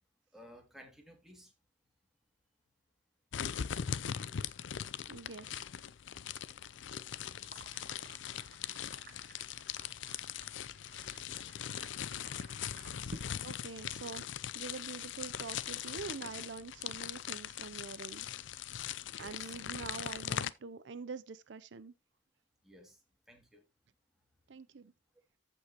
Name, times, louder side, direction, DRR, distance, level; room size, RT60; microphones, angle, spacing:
voice 1, 0.3-1.5 19.0-19.6 22.6-23.0 23.3-23.6, equal, ahead, 2.4 m, -56 dB
sound 1, 3.3-20.5, left 9 dB, 80° left, 0.5 m, -41 dB
voice 2, 5.1-5.6 13.4-14.2 14.5-18.3 19.2-21.9 24.5-24.9, right 4 dB, 70° right, 0.5 m, -45 dB
sound 2, 7.4-13.9, right 2 dB, 50° right, 1.3 m, -54 dB
14.5 x 5.4 x 2.9 m
head